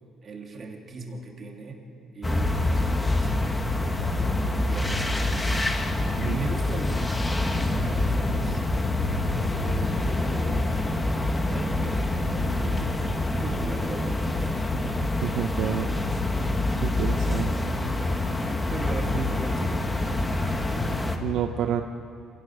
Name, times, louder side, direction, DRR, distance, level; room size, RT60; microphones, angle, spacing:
voice 1, 0.2-1.8 2.1-3.4 4.0-5.6 6.2-7.1 7.5-8.6 9.1-11.1 11.5-13.0 13.3-14.5 14.8-15.2 18.7-21.1, right 3 dB, 40° right, 1 dB, 3.1 m, -39 dB
sound 1, 2.2-21.2, left 2 dB, 15° left, 1.6 m, -26 dB
voice 2, 15.2-15.9 16.8-17.5 21.2-21.8, right 10 dB, 70° right, 6 dB, 0.8 m, -28 dB
27.0 x 18.0 x 6.4 m, 2.7 s
cardioid pair, 130°, 0 cm